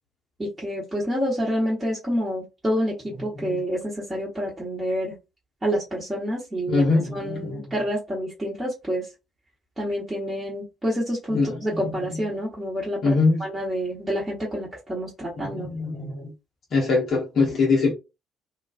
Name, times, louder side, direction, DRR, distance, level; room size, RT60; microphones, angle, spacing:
voice 1, 0.4-5.1 5.6-9.1 9.8-13.1 13.4-15.7, equal, 20° right, 1.0 m, -28 dB
voice 2, 6.7-7.6 11.3-12.2 13.0-13.4 15.4-16.3 16.7-17.9, left 3 dB, 50° left, 0.8 m, -23 dB
2.3 x 2.3 x 2.4 m
figure-of-eight pair, 45°, 0 cm